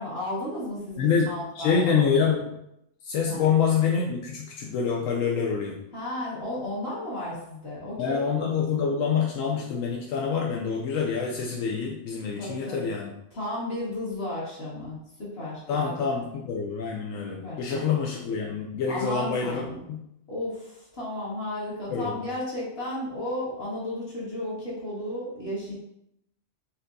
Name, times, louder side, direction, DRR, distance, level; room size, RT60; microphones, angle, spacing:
voice 1, 0.0-2.2 3.3-3.4 5.9-8.3 12.4-12.9 13.3-16.2 17.3-17.8 18.9-19.9 20.3-25.8, left 1 dB, 50° left, -7 dB, 1.7 m, -34 dB
voice 2, 1.0-1.3 1.6-2.5 3.0-5.7 8.0-13.1 15.7-20.0 21.9-22.2, left 6 dB, 85° left, -1 dB, 1.0 m, -26 dB
4.3 x 3.6 x 2.6 m, 0.80 s
omnidirectional pair, 1.3 m